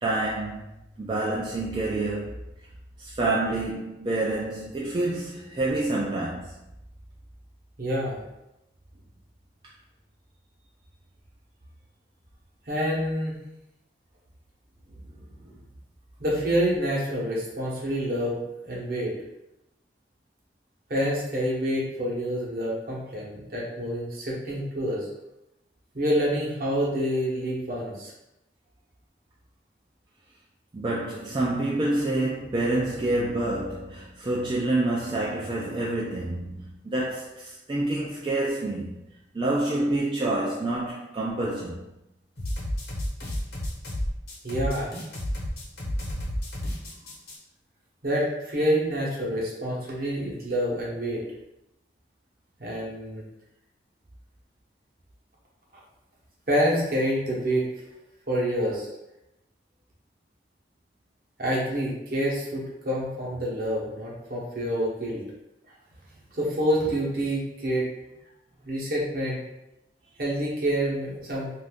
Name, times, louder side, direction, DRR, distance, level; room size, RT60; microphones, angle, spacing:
voice 1, 0.0-2.4 3.0-6.5 30.7-38.9 39.3-41.8, right 2 dB, 25° right, 0.3 m, -28 dB
voice 2, 7.8-8.2 12.7-13.4 15.2-15.5 16.2-19.2 20.9-25.1 25.9-28.1 44.4-44.9 48.0-51.2 52.6-53.2 56.5-57.7 58.3-58.9 61.4-65.3 66.3-67.9 68.6-69.4 70.2-71.5, equal, 55° right, 0.9 m, -27 dB
sound 1, 42.4-47.3, left 1 dB, 70° left, 1.0 m, -31 dB
2.6 x 2.5 x 3.5 m
head